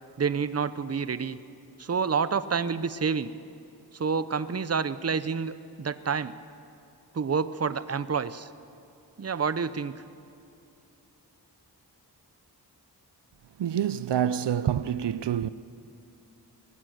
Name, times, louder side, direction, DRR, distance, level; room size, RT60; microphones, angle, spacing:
voice 1, 0.2-1.4 1.8-3.3 3.9-6.3 7.1-8.5 9.2-10.0, right 6 dB, 35° right, 0.7 m, -28 dB
voice 2, 13.6-15.5, right 9 dB, 85° right, 0.5 m, -27 dB
20.5 x 16.5 x 7.9 m
wide cardioid pair, 60°, 41 cm